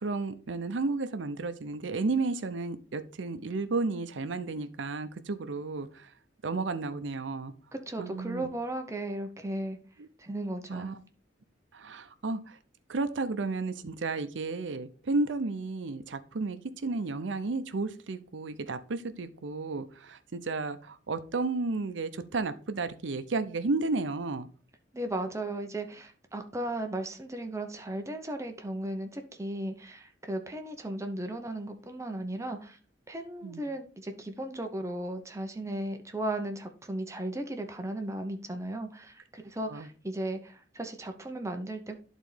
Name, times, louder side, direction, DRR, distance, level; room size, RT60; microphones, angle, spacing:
voice 1, 0.0-6.1 6.4-7.5 8.0-8.5 10.7-11.0 11.7-12.6 12.9-24.5 33.4-33.6 39.7-39.9, right 3 dB, 75° right, 11 dB, 0.6 m, -32 dB
voice 2, 7.7-9.8 10.2-10.9 24.9-32.8 33.1-42.0, right 1 dB, 15° right, 5 dB, 0.7 m, -36 dB
11.0 x 4.1 x 3.3 m, 0.39 s
head